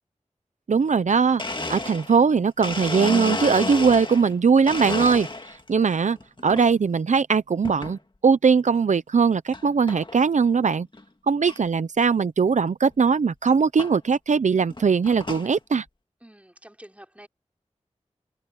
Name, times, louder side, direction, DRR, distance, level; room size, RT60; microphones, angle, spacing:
voice 1, 0.7-1.4 1.7-5.3 5.7-6.2 6.4-10.9 11.3-15.8, right 5 dB, 90° right, 0.6 m, -20 dB
Domestic sounds home sounds, 1.0-1.1 1.4-4.3 4.7-5.7 6.2-6.7 7.6-8.0 8.6-8.7 9.5-9.6 9.9-10.2 10.6-10.7 10.9-11.0 11.5-11.6 12.9-13.0 13.8-13.9 14.6-15.5, left 2 dB, 40° left, 2.1 m, -31 dB
voice 2, 16.2-17.3, right 1 dB, 10° right, 4.7 m, -48 dB
wide cardioid pair, 60°, 12 cm